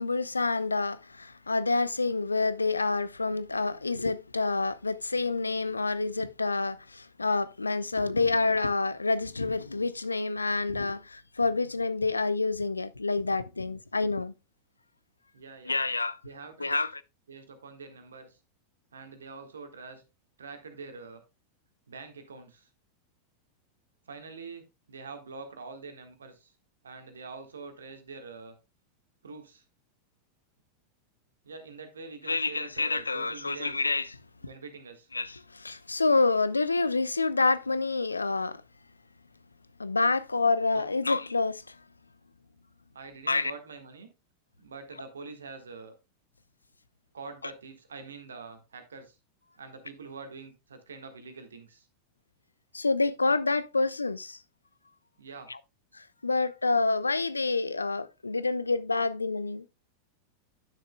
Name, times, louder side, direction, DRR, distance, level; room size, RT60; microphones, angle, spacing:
voice 1, 0.0-14.3 15.7-16.2 16.6-16.9 32.3-34.1 35.1-38.6 39.8-41.8 43.3-43.5 52.7-54.4 55.5-55.6 55.9-59.6, left 3 dB, 80° left, 0.4 m, -28 dB
voice 2, 15.3-15.8 16.2-16.8 17.3-18.4 18.9-20.0 20.4-21.2 21.9-22.7 24.1-26.5 26.8-28.6 29.2-29.6 31.4-33.8 34.4-35.1 40.7-41.0 42.9-44.1 44.6-45.9 47.1-49.2 49.6-51.9 55.2-55.5, right 4 dB, 70° right, 1.5 m, -45 dB
11.0 x 6.4 x 2.2 m
figure-of-eight pair, 90°, 0 cm